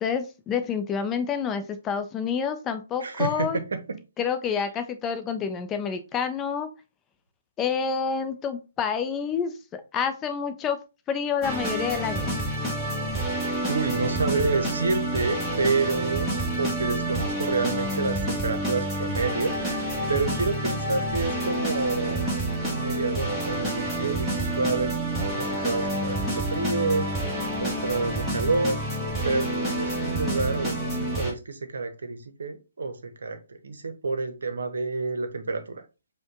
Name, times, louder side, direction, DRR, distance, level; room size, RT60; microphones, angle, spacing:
voice 1, 0.0-3.6 4.2-6.7 7.6-9.5 9.9-10.8 11.1-12.4, left 6 dB, 15° left, 0.6 m, -28 dB
voice 2, 3.0-4.0 13.7-22.3 22.7-27.1 27.6-28.8 29.2-35.8, right 3 dB, 60° right, 0.8 m, -29 dB
sound 1, 11.4-31.3, right 1 dB, 5° right, 1.4 m, -28 dB
5.1 x 2.3 x 3.7 m
figure-of-eight pair, 135°, 0 cm